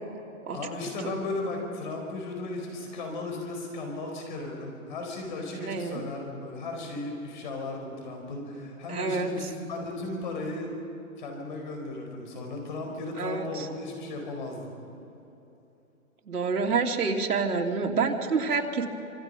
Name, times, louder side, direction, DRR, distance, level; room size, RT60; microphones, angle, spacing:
voice 1, 0.5-10.7 11.2-14.7, left 2 dB, 35° left, 2 dB, 4.9 m, -35 dB
voice 2, 5.6-6.0 8.9-9.3 13.2-13.7 16.3-18.9, right 4 dB, 90° right, 1 dB, 3.0 m, -28 dB
26.5 x 24.0 x 5.6 m, 2.9 s
hypercardioid pair, 175°, 44 cm